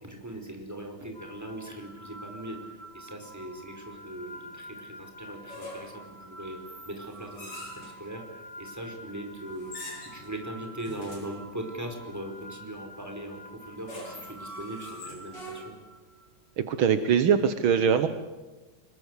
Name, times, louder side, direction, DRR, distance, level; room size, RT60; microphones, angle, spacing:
voice 1, 0.0-9.8 10.0-15.8, right 1 dB, 5° right, 4 dB, 5.0 m, -40 dB
sound 1, 1.1-16.3, right 1 dB, 30° left, 2.7 m, -47 dB
sound 2, 5.5-6.0 6.7-8.0 9.6-10.3 10.8-11.4 13.6-15.9, left 1 dB, 55° left, 9.0 m, -43 dB
voice 2, 16.7-18.1, right 7 dB, 75° right, 10 dB, 1.9 m, -22 dB
25.5 x 22.0 x 8.3 m, 1.2 s
omnidirectional pair, 2.3 m